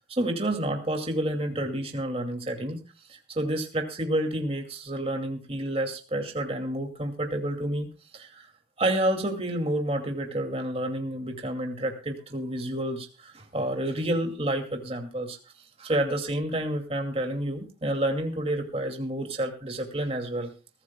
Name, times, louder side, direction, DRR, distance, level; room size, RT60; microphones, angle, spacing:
voice 1, 0.1-2.8 3.4-7.9 8.1-8.5 8.8-15.4 15.8-20.5, right 1 dB, 30° right, 3 dB, 2.4 m, -29 dB
22.5 x 15.0 x 2.3 m, 0.33 s
head